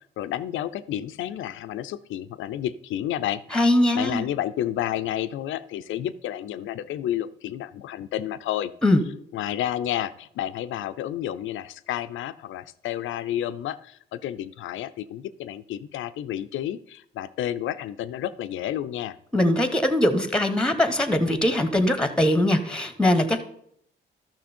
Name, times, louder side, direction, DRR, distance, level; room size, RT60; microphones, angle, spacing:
voice 1, 0.2-3.4 3.9-8.7 9.3-19.2, left 12 dB, 80° left, 13 dB, 0.6 m, -30 dB
voice 2, 3.5-4.3 8.8-9.0 19.3-23.4, left 1 dB, 5° left, 10 dB, 1.2 m, -21 dB
13.0 x 6.1 x 4.4 m, 0.69 s
cardioid pair, 90°, 20 cm